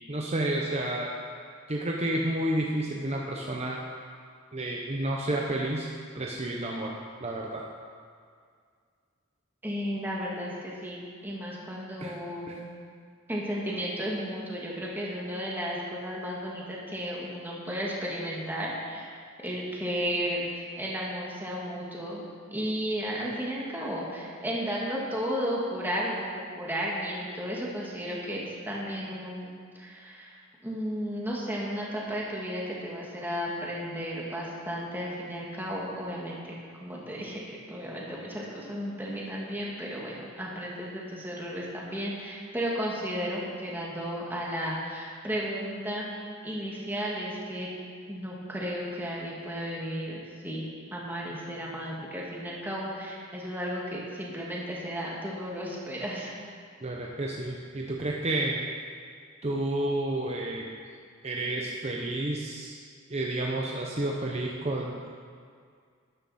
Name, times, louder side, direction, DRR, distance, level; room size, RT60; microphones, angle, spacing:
voice 1, 0.1-1.2 1.7-3.8 4.5-5.9 6.1-6.9 7.2-7.6 12.0-12.1 12.5-12.6 56.8-58.6 59.4-60.7 61.2-62.8 63.1-65.1, right 1 dB, 30° right, -1 dB, 0.8 m, -30 dB
voice 2, 9.6-12.7 13.3-19.1 19.4-22.2 22.5-36.4 36.8-46.1 46.4-47.7 48.1-56.4, equal, 10° right, -4 dB, 1.8 m, -34 dB
12.5 x 10.5 x 4.3 m, 2.1 s
head